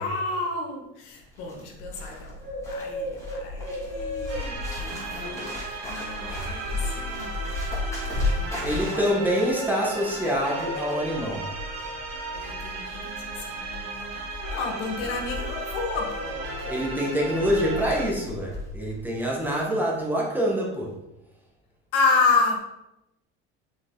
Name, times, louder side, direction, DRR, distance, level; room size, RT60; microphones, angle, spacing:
voice 1, 0.0-2.4 2.7-7.5 8.4-9.1 12.3-14.2 14.5-16.5 21.9-22.6, left 4 dB, 85° left, 1 dB, 1.8 m, -30 dB
Bird, 1.1-19.0 19.2-19.5, left 2 dB, 10° left, 2.7 m, -34 dB
sound 1, 4.3-18.1, right 3 dB, 60° right, 2.0 m, -36 dB
voice 2, 8.6-11.5 16.7-20.9, equal, 5° right, -3 dB, 1.8 m, -26 dB
7.4 x 6.1 x 3.9 m, 0.88 s
cardioid pair, 140°, 30 cm